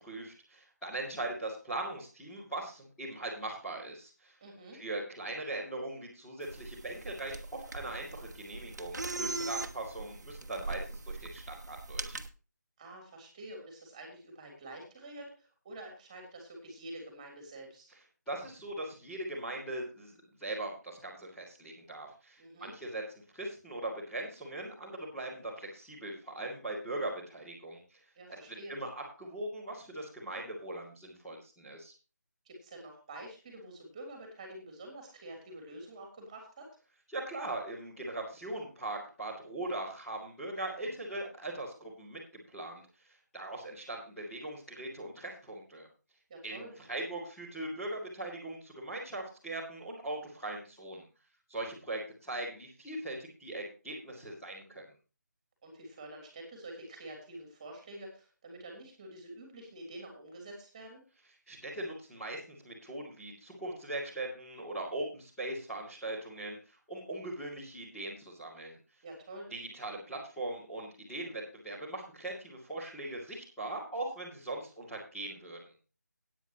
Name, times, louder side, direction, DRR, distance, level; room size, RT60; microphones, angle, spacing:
voice 1, 0.0-4.3 4.7-12.2 18.3-23.0 23.3-28.0 28.3-28.9 29.2-31.9 37.1-42.2 42.5-42.8 43.3-45.9 46.4-51.0 51.5-54.9 61.5-68.8 69.5-75.7, right 2 dB, 5° left, -11 dB, 2.4 m, -40 dB
voice 2, 4.4-4.8 12.8-17.9 22.4-22.7 28.1-28.7 32.4-36.7 46.3-46.7 55.6-61.0 69.0-69.5, right 1 dB, 20° right, 2 dB, 3.1 m, -47 dB
sound 1, 6.4-12.3, right 3 dB, 65° right, 1.3 m, -40 dB
16.0 x 9.3 x 3.0 m, 0.33 s
figure-of-eight pair, 170°, 10 cm